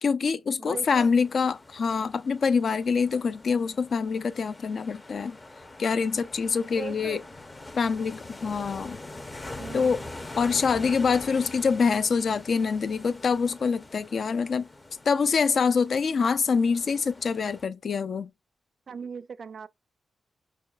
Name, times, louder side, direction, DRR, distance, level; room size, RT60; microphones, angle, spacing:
voice 1, 0.0-5.4 5.8-7.2 7.8-9.0 9.7-10.0 10.4-14.7 15.1-18.3, left 5 dB, 60° left, 0.3 m, -25 dB
sound 1, 0.6-17.7, left 2 dB, 30° left, 0.7 m, -44 dB
voice 2, 0.6-1.2 6.8-7.2 9.6-10.1 18.9-19.7, right 6 dB, 60° right, 0.3 m, -38 dB
5.5 x 2.2 x 2.3 m
cardioid pair, 70°, 0 cm